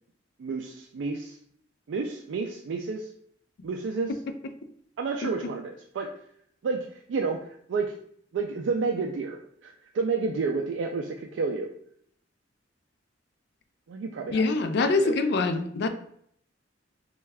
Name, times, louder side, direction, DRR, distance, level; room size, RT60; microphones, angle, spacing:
voice 1, 0.4-1.4 1.9-3.1 3.6-4.1 5.0-6.1 6.6-7.9 8.3-11.7 13.9-14.5 14.8-15.2, right 4 dB, 70° right, 2 dB, 0.3 m, -30 dB
voice 2, 14.3-15.9, left 3 dB, 60° left, 8 dB, 0.4 m, -24 dB
3.2 x 2.3 x 3.3 m, 0.66 s
head